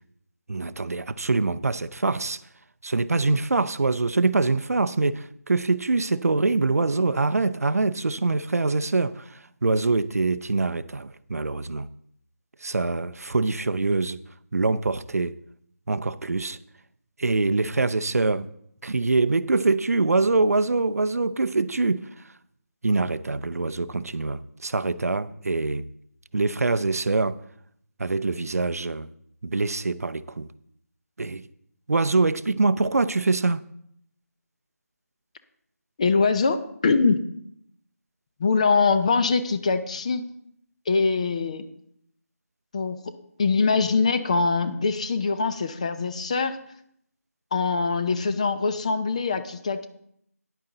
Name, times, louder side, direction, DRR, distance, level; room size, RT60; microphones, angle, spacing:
voice 1, 0.5-2.4 2.8-11.9 12.6-14.2 14.5-15.4 15.9-16.6 17.2-18.5 18.8-22.3 22.8-25.9 26.3-27.4 28.0-29.1 29.4-30.5 31.2-31.4 31.9-33.6, right 3 dB, 70° right, 0.6 m, -24 dB
voice 2, 36.0-37.3 38.4-40.3 40.9-41.6 42.7-43.0 43.4-46.6 47.5-49.9, left 4 dB, 25° left, 0.5 m, -23 dB
10.0 x 8.9 x 3.9 m
figure-of-eight pair, 165°, 9 cm